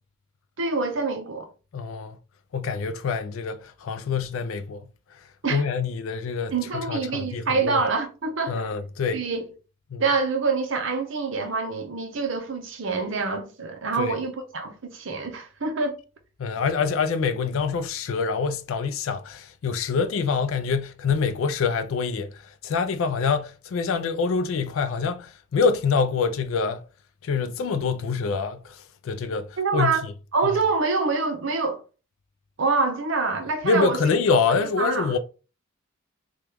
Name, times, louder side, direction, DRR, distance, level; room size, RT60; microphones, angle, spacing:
voice 1, 0.6-1.5 5.4-5.6 6.5-8.6 9.1-9.4 10.0-16.0 29.6-30.0 30.3-31.8 32.6-34.0 34.8-35.1, right 4 dB, 60° right, 0.6 m, -26 dB
voice 2, 1.7-2.2 2.5-4.9 5.5-7.8 8.5-9.2 9.9-10.0 14.0-14.2 16.4-26.8 27.2-30.1 33.6-35.2, left 5 dB, 65° left, 0.3 m, -26 dB
2.9 x 2.3 x 3.3 m
head